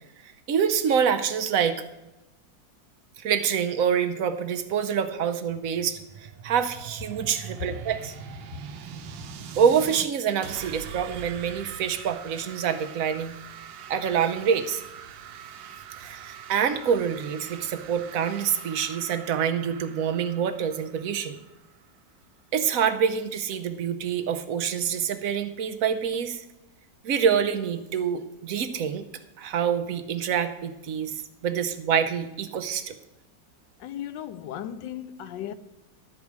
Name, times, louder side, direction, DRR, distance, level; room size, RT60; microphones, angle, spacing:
voice 1, 0.2-1.8 3.2-8.1 9.6-13.3 13.9-14.8 16.0-21.4 22.5-26.4 27.0-29.0 29.4-31.1 31.4-33.0, right 7 dB, 60° right, 1.0 m, -26 dB
sound 1, 5.7-10.1 10.4-22.0, right 7 dB, 85° right, 1.5 m, -43 dB
voice 2, 33.8-35.5, left 10 dB, 80° left, 1.2 m, -36 dB
12.5 x 4.8 x 7.2 m
omnidirectional pair, 2.0 m